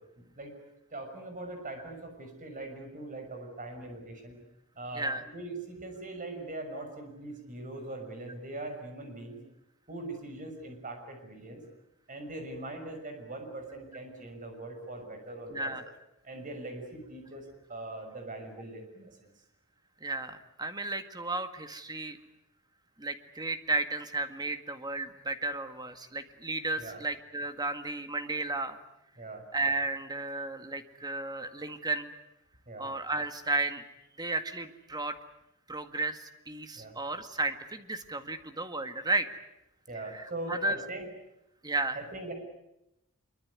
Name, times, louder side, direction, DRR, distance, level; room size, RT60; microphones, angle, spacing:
voice 1, 0.2-0.5 0.9-4.4 4.8-9.4 9.9-11.6 12.1-15.7 16.2-19.3 26.8-27.0 29.2-29.4 32.7-32.9 36.7-36.9 39.9-41.1 42.0-42.3, right 2 dB, 40° right, 5 dB, 6.3 m, -41 dB
voice 2, 15.5-15.8 20.0-22.2 23.0-28.8 29.5-32.1 32.8-33.8 34.2-35.2 35.7-39.3 40.0-40.8 41.6-42.0, right 2 dB, 20° right, 8 dB, 1.9 m, -33 dB
25.0 x 23.5 x 9.6 m, 0.86 s
head